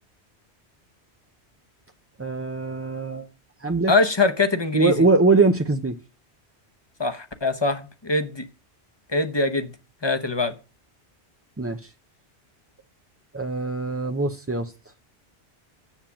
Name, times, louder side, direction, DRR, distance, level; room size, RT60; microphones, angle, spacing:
voice 1, 2.2-3.3 3.6-3.9 4.7-5.9 11.6-11.8 13.3-14.7, right 3 dB, 20° right, 0.4 m, -22 dB
voice 2, 3.9-5.1 7.0-8.5 9.1-9.7 10.0-10.5, left 3 dB, 25° left, 0.8 m, -23 dB
7.3 x 7.3 x 7.0 m
omnidirectional pair, 1.1 m